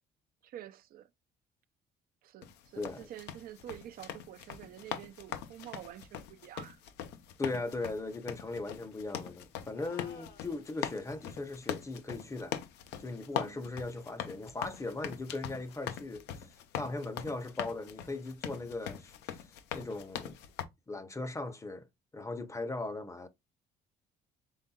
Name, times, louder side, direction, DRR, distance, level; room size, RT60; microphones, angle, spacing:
voice 1, 0.4-1.1 2.2-6.8 13.3-13.7, right 12 dB, 60° right, 0.4 m, -48 dB
sound 1, 2.4-20.6, left 10 dB, 90° left, 0.7 m, -42 dB
voice 2, 2.8-3.1 7.4-12.6 13.0-19.5 19.7-20.4 20.9-21.9 22.1-23.3, left 2 dB, 20° left, 0.6 m, -39 dB
sound 2, 9.7-11.2, left 7 dB, 65° left, 1.1 m, -55 dB
5.6 x 3.6 x 2.2 m
cardioid pair, 110°, 17 cm